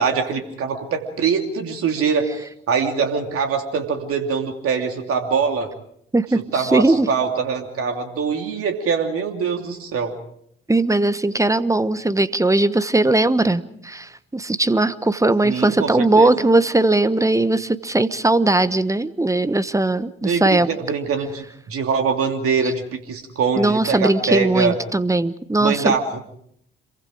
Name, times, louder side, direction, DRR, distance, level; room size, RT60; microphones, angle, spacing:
voice 1, 0.0-5.7 6.5-10.1 15.4-16.3 20.2-24.7 25.6-26.2, right 5 dB, 50° right, 4 dB, 2.9 m, -23 dB
voice 2, 6.1-7.1 10.7-20.7 22.6-22.7 23.6-25.9, right 2 dB, 10° right, 15 dB, 1.2 m, -19 dB
27.0 x 23.0 x 5.0 m, 0.70 s
figure-of-eight pair, 45°, 29 cm